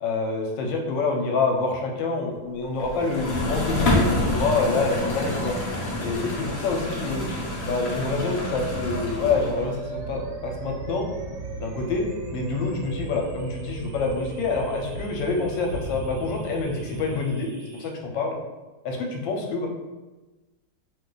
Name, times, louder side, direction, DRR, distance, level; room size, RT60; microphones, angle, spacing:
voice 1, 0.0-5.5 6.0-7.3 7.6-11.1 11.5-18.4 18.8-19.7, left 3 dB, 85° left, 2 dB, 1.3 m, -27 dB
sound 1, 2.8-9.8, left 1 dB, 60° left, 0.6 m, -28 dB
sound 2, 7.9-17.9, right 3 dB, 70° right, 1.2 m, -40 dB
sound 3, 9.9-17.2, right 2 dB, 50° right, 1.2 m, -38 dB
3.0 x 2.3 x 3.7 m, 1.1 s
omnidirectional pair, 2.0 m